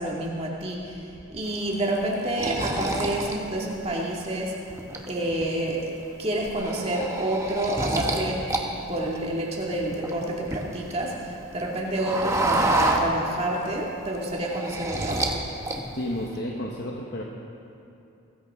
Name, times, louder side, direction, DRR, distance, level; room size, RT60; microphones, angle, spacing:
voice 1, 0.0-4.5 5.1-8.5 8.9-15.2, right 1 dB, 30° right, -3 dB, 2.1 m, -28 dB
sound 1, 1.5-4.3 4.7-5.4 5.8-6.0 6.3-8.6 8.9-11.0 11.3-13.6 14.0-15.4 15.6-16.3, right 2 dB, 15° right, 1.0 m, -28 dB
voice 2, 15.9-17.2, left 1 dB, 50° left, -1 dB, 1.1 m, -31 dB
21.5 x 14.0 x 3.7 m, 2.7 s
head